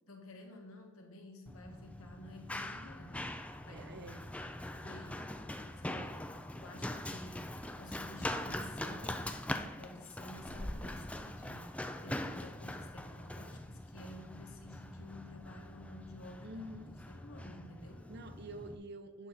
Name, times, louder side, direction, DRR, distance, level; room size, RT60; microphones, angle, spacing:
voice 1, 0.1-3.4 3.7-4.2 4.8-5.4 5.8-9.3 9.8-16.7 17.1-18.1, left 1 dB, 80° left, 3 dB, 1.3 m, -52 dB
Run, 1.5-18.8, left 1 dB, 5° left, 0.3 m, -42 dB
voice 2, 3.7-4.3 5.9-6.3 16.4-16.9 18.1-19.3, right 1 dB, 50° right, 9 dB, 0.6 m, -48 dB
9.0 x 5.8 x 3.9 m, 1.2 s
head